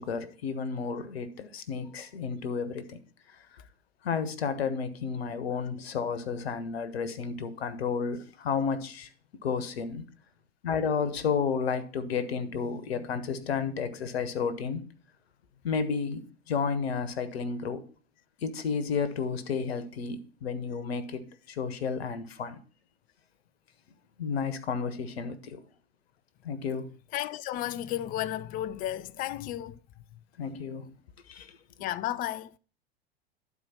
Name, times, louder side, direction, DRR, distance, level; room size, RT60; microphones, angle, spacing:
voice 1, 0.0-3.0 4.0-9.1 9.4-10.0 10.6-14.9 15.6-17.8 18.4-22.6 24.2-25.6 26.4-26.9 30.4-30.9 31.3-31.6, left 5 dB, 70° left, 1.2 m, -32 dB
voice 2, 27.1-29.8 31.8-32.5, left 13 dB, 30° left, 0.4 m, -33 dB
11.5 x 4.5 x 4.3 m
hypercardioid pair, 95°, 32 cm